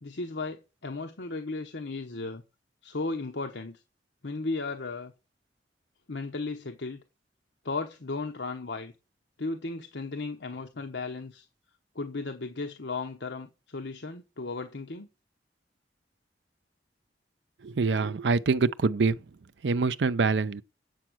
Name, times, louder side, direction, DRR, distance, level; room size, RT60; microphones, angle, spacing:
voice 1, 0.0-2.4 2.8-3.8 4.2-5.1 6.1-7.0 7.6-8.9 9.4-11.5 11.9-15.1, left 3 dB, 75° left, 1.0 m, -35 dB
voice 2, 17.6-19.2 19.6-20.6, right 4 dB, 75° right, 0.5 m, -25 dB
8.4 x 7.2 x 6.2 m
head